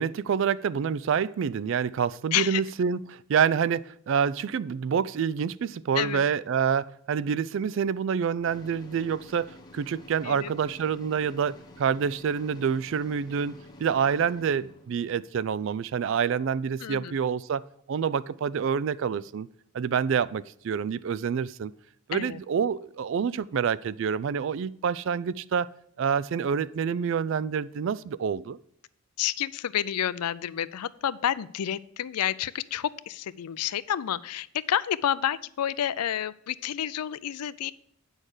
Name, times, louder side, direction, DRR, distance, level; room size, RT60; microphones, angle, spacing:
voice 1, 0.0-13.5 13.8-19.5 19.7-21.7 22.1-25.7 26.0-28.6, right 7 dB, 55° right, 0.3 m, -27 dB
sound 1, 8.4-16.4, left 2 dB, 20° left, 1.0 m, -51 dB
voice 2, 16.8-17.1 22.1-22.4 29.2-37.7, left 10 dB, 90° left, 0.4 m, -29 dB
8.9 x 6.4 x 4.8 m
head